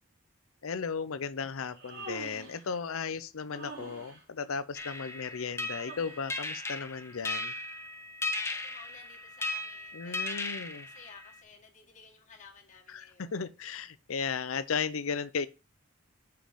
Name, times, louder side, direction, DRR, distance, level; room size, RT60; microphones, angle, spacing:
voice 1, 0.6-7.5 9.9-10.9 12.9-15.5, left 5 dB, 70° left, 0.6 m, -35 dB
Human voice, 1.6-2.7 3.5-4.2 5.7-6.4, right 2 dB, 65° right, 3.1 m, -45 dB
sound 1, 4.7-11.4, left 2 dB, 10° left, 0.6 m, -37 dB
voice 2, 8.3-13.5, left 5 dB, 35° left, 1.8 m, -55 dB
5.9 x 5.2 x 5.1 m
head